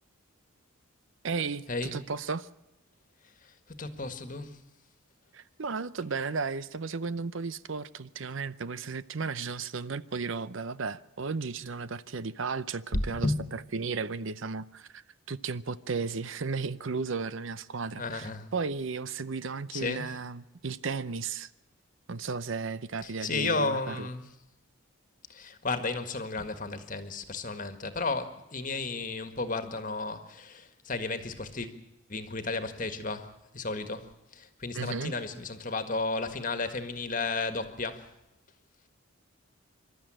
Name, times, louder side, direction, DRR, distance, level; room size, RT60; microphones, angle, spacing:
voice 1, 1.2-2.5 5.3-21.5 22.1-24.1 34.7-35.1, right 4 dB, 60° right, 0.7 m, -34 dB
voice 2, 3.4-4.6 12.9-13.4 17.9-18.5 19.7-20.1 23.0-24.3 25.3-31.7 32.1-38.1, left 3 dB, 35° left, 1.7 m, -33 dB
26.5 x 12.5 x 8.9 m
head